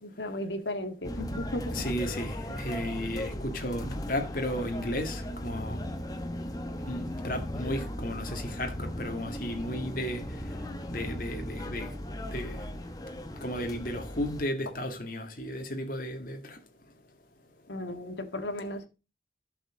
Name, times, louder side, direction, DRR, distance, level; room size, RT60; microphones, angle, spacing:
voice 1, 0.0-1.9 17.7-18.9, left 1 dB, 85° left, 1.7 m, -35 dB
sound 1, 1.0-14.4, equal, 20° left, 1.0 m, -37 dB
voice 2, 1.7-5.8 6.9-10.2 10.9-11.9 12.3-12.6 13.4-16.6, left 1 dB, 50° left, 1.9 m, -34 dB
11.0 x 6.7 x 3.7 m
head